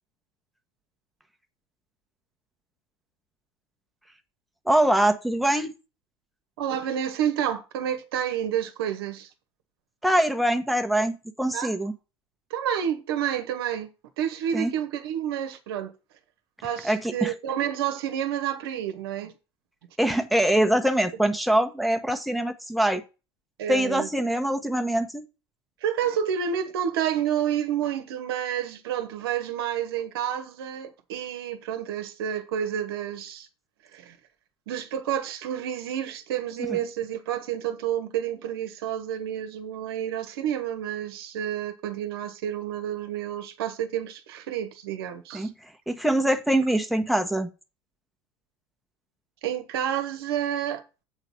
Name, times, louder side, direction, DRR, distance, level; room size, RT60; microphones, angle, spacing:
voice 1, 4.6-5.7 10.0-11.9 14.5-14.7 16.8-17.3 20.0-23.0 23.7-25.2 36.6-36.8 45.3-47.5, right 1 dB, ahead, 1.1 m, -24 dB
voice 2, 6.6-9.3 11.5-11.7 12.5-13.9 14.2-15.9 16.6-19.3 23.6-24.1 25.8-33.5 33.9-34.2 34.7-45.5 49.4-50.8, right 9 dB, 65° right, 1.0 m, -29 dB
7.9 x 4.0 x 6.1 m
figure-of-eight pair, 70°, 14 cm